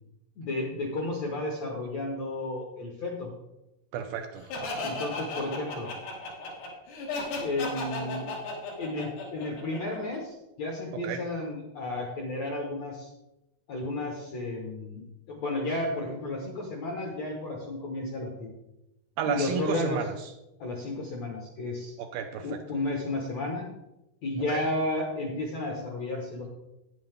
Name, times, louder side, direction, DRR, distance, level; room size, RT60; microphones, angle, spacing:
voice 1, 0.4-3.3 4.8-5.9 7.4-8.3 8.8-13.1 13.7-18.5 19.3-20.0 20.6-21.9 22.4-23.6 24.2-26.5, left 2 dB, 65° left, 0 dB, 1.7 m, -32 dB
voice 2, 3.9-4.7 11.0-11.2 19.2-20.1 22.0-22.6 24.5-24.6, right 7 dB, 80° right, 5 dB, 2.3 m, -32 dB
Laughter, 4.5-10.2, left 2 dB, 90° left, 4.4 m, -35 dB
9.9 x 9.4 x 3.5 m, 0.92 s
omnidirectional pair, 4.7 m